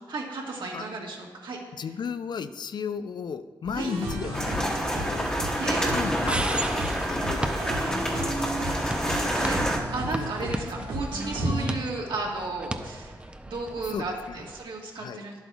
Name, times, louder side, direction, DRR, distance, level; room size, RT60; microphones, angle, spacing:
voice 1, 0.1-1.6 3.7-3.9 5.6-5.8 9.1-9.6 9.9-13.1 13.4-15.3, right 2 dB, 65° right, -1 dB, 1.6 m, -33 dB
voice 2, 1.7-5.3 5.9-8.0 8.4-8.7 10.2-10.9 13.9-14.5 14.9-15.2, left 6 dB, 60° left, 12 dB, 0.4 m, -35 dB
sound 1, 3.7-11.7, right 1 dB, 80° right, 1.5 m, -34 dB
sound 2, 4.1-14.6, right 1 dB, 15° right, 0.5 m, -37 dB
sound 3, 4.3-9.8, equal, 10° left, 1.3 m, -28 dB
10.5 x 7.9 x 2.3 m, 1.5 s
cardioid pair, 65°, 9 cm